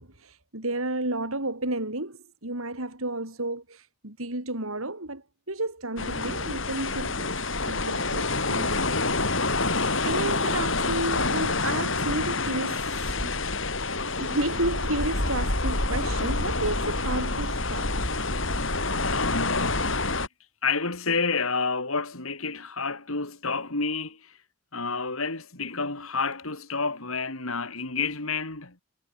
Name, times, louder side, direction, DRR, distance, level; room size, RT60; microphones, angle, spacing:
voice 1, 0.0-7.4 7.6-8.8 9.4-13.3 14.1-17.9, right 2 dB, 80° right, 5.8 m, -32 dB
sound 1, 6.0-20.3, left 3 dB, 65° left, 6.5 m, -27 dB
voice 2, 19.0-19.9 20.6-24.4 24.7-28.8, left 4 dB, 80° left, 3.8 m, -29 dB
head